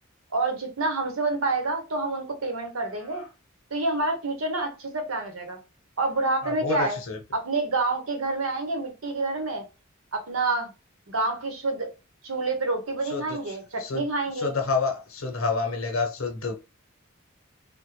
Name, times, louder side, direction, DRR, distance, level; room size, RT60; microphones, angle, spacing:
voice 1, 0.3-3.2 3.7-5.6 6.0-7.0 7.3-9.6 10.1-10.7 11.1-11.9 12.2-14.5, right 3 dB, 70° right, 1.0 m, -28 dB
voice 2, 6.4-7.2 13.1-13.4 13.8-14.0 14.4-16.6, left 4 dB, 70° left, 0.9 m, -28 dB
3.5 x 2.2 x 3.1 m
head